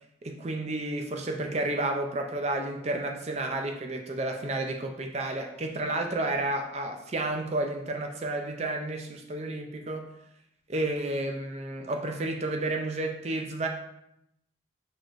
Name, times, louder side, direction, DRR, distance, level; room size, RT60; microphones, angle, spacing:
voice 1, 0.2-10.1 10.7-13.7, right 2 dB, 35° right, 3 dB, 0.5 m, -31 dB
4.6 x 4.2 x 2.5 m, 0.79 s
head